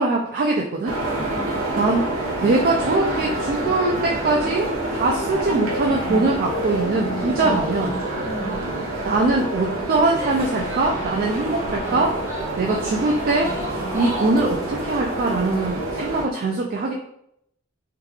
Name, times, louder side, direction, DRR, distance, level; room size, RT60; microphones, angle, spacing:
voice 1, 0.0-1.0 1.8-2.0 2.4-7.9 9.0-12.2 12.6-16.9, right 2 dB, 45° right, 0 dB, 0.3 m, -22 dB
sound 1, 0.8-16.2, right 1 dB, 80° right, 0.8 m, -28 dB
voice 2, 1.0-1.7 7.1-7.7 8.2-8.6, left 1 dB, 55° left, 1 dB, 0.6 m, -36 dB
sound 2, 4.2-14.7, equal, 85° left, 1.2 m, -35 dB
Female speech woman speaking / Yell, 10.1-11.3 11.8-14.5, right 1 dB, 15° right, 0.7 m, -34 dB
3.6 x 2.3 x 3.0 m, 0.75 s
head